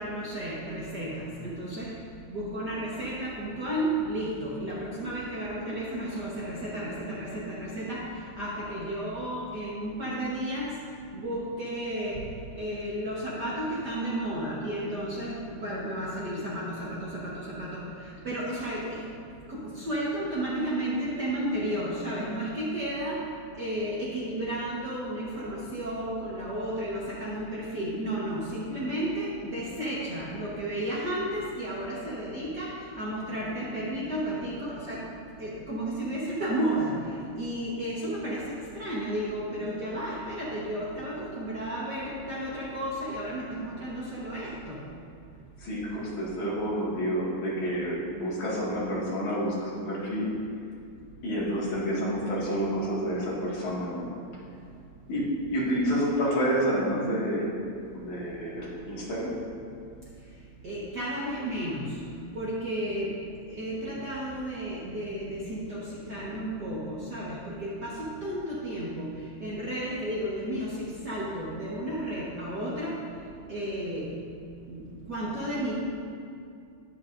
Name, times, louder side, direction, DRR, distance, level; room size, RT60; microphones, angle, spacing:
voice 1, 0.0-1.9 2.3-10.7 11.1-12.2 12.5-19.0 19.5-23.2 23.6-32.7 33.0-35.0 35.4-37.0 37.4-44.8 60.6-62.0 62.3-63.1 63.5-69.1 69.4-72.9 73.5-74.1 74.7-75.7, right 1 dB, 45° right, -7 dB, 1.4 m, -33 dB
voice 2, 45.6-50.3 51.2-54.1 55.1-57.5 57.9-59.3, equal, 75° left, -7 dB, 3.4 m, -29 dB
12.0 x 11.0 x 2.6 m, 2.5 s
omnidirectional pair, 3.4 m